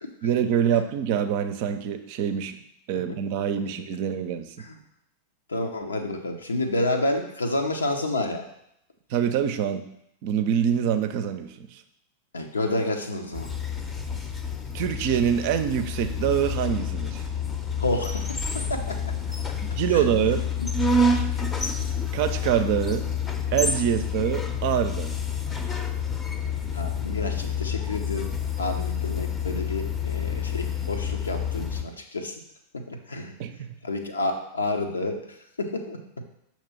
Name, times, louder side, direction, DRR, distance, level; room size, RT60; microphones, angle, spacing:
voice 1, 0.2-2.6 2.9-4.5 9.1-9.8 10.2-11.8 14.7-17.2 19.8-20.4 22.1-23.1 23.5-25.2 33.4-33.7, right 9 dB, 45° right, 9 dB, 0.5 m, -25 dB
voice 2, 5.5-8.5 12.3-13.5 17.8-19.2 19.9-20.1 20.6-20.7 26.7-28.3 28.6-32.4 32.7-33.3 33.8-35.2 35.6-36.2, left 2 dB, 75° left, 4 dB, 0.8 m, -29 dB
sound 1, 13.3-31.8, left 4 dB, 15° left, 0.7 m, -28 dB
6.6 x 2.9 x 5.8 m, 0.75 s
figure-of-eight pair, 90°, 0 cm